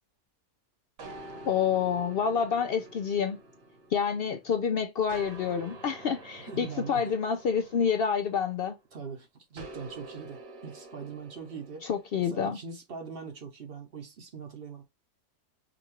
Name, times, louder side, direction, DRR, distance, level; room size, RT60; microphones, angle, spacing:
sound 1, 1.0-4.6 5.1-8.8 9.6-12.2, right 2 dB, 65° right, 1.4 m, -47 dB
voice 1, 1.4-3.4 3.9-8.7 11.8-12.6, left 7 dB, 80° left, 0.5 m, -28 dB
voice 2, 6.4-7.2 8.9-11.9 12.2-14.8, right 5 dB, 50° right, 0.8 m, -42 dB
5.0 x 2.4 x 2.8 m
omnidirectional pair, 1.5 m